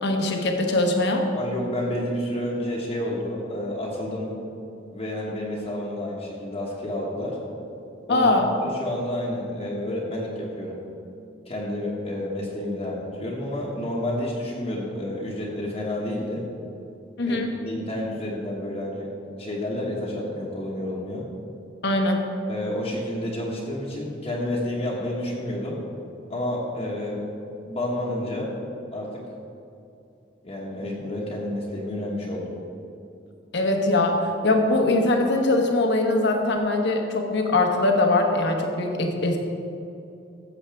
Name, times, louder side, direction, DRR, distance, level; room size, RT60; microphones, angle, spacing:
voice 1, 0.0-1.3 8.1-8.5 17.2-17.5 21.8-22.2 33.5-39.4, left 2 dB, 65° left, 3 dB, 1.1 m, -22 dB
voice 2, 1.3-4.3 4.9-7.4 8.1-8.3 8.6-10.8 11.5-16.4 17.2-17.4 17.6-19.1 19.4-21.2 22.5-25.8 26.3-27.3 27.7-28.5 28.9-29.2 30.4-32.5, left 1 dB, 35° left, -5 dB, 1.3 m, -30 dB
14.5 x 7.2 x 3.5 m, 2.7 s
head